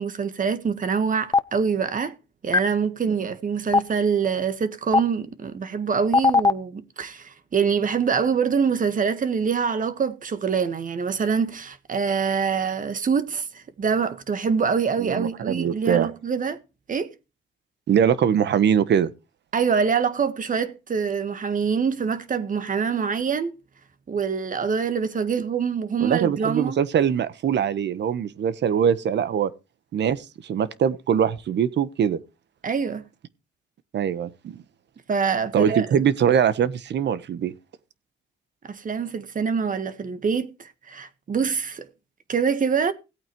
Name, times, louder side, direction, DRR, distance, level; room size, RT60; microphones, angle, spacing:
voice 1, 0.0-2.1 2.4-16.6 16.9-17.1 19.5-23.5 24.1-26.8 32.6-33.0 35.1-35.9 38.7-41.9 42.3-42.9, right 6 dB, 40° right, 1.5 m, -25 dB
Stream, 1.3-1.4 2.5-2.6 3.7-3.8 4.9-5.0 6.1-6.5, left 4 dB, 20° left, 0.7 m, -16 dB
voice 2, 15.0-16.1 17.9-19.1 26.0-29.5 29.9-32.2 33.9-34.6 35.5-37.5, right 8 dB, 60° right, 1.2 m, -22 dB
17.0 x 8.7 x 3.1 m
cardioid pair, 90°, 20 cm